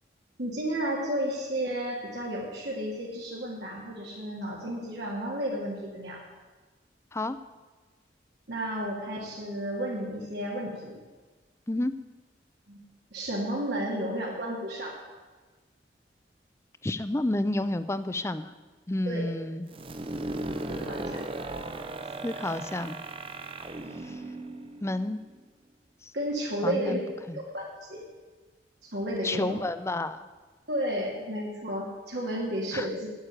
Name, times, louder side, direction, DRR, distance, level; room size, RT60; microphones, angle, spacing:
voice 1, 0.4-6.2 8.5-11.0 12.7-12.8 13.1-14.9 19.1-19.2 20.7-21.2 26.1-27.0 27.5-28.0 28.8-29.6 30.7-33.1, right 1 dB, 75° right, -4 dB, 2.3 m, -32 dB
voice 2, 16.8-18.5 18.9-19.7 22.2-23.0 24.0-24.2 24.8-25.2 26.0-26.1 26.6-27.0 27.3-27.4 29.2-30.3 32.7-32.9, left 1 dB, 15° left, 13 dB, 0.5 m, -30 dB
sound 1, 19.7-25.4, right 2 dB, 30° right, 0.7 m, -37 dB
9.4 x 8.1 x 9.0 m, 1.3 s
head